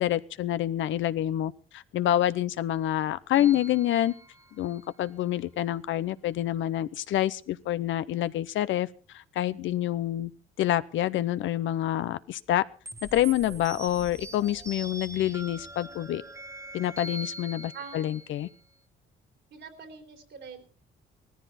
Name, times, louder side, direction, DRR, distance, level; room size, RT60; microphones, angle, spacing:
voice 1, 0.0-4.1 4.5-10.3 10.6-12.6 13.0-16.2 16.7-18.5, left 13 dB, 75° left, 16 dB, 0.7 m, -27 dB
sound 1, 3.3-4.9 12.9-18.6, right 1 dB, 15° right, 1.2 m, -43 dB
voice 2, 17.7-18.1 19.5-20.7, right 5 dB, 65° right, 6 dB, 3.4 m, -44 dB
17.5 x 14.5 x 4.2 m, 0.37 s
cardioid pair, 90°, 20 cm